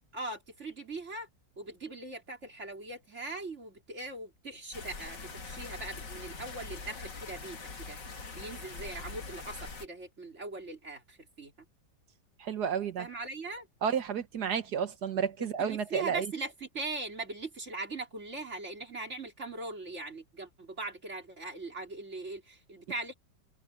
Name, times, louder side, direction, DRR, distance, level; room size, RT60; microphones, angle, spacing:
voice 1, 0.1-1.3 1.6-8.0 8.3-11.5 13.0-13.7 15.4-23.1, right 3 dB, 40° right, 3.7 m, -40 dB
sound 1, 4.7-9.9, left 4 dB, 85° left, 3.2 m, -43 dB
voice 2, 12.4-13.1 13.8-16.3, right 7 dB, 70° right, 1.7 m, -31 dB
omnidirectional pair, 1.9 m